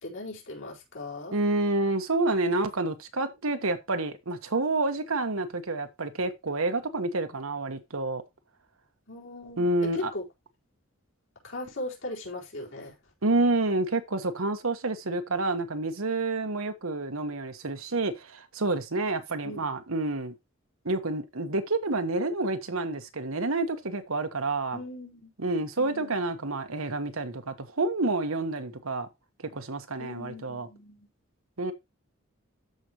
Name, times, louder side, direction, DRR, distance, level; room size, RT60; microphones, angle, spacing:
voice 1, 0.0-1.4 9.1-10.2 11.4-12.9 19.4-19.7 24.7-25.3 25.8-26.2 30.0-31.1, left 1 dB, 70° left, 4.4 m, -39 dB
voice 2, 1.3-8.2 9.6-10.1 13.2-20.3 20.8-24.8 25.4-29.1 29.5-30.7 31.6-31.7, right 2 dB, 80° right, 1.3 m, -29 dB
13.5 x 5.2 x 3.0 m
head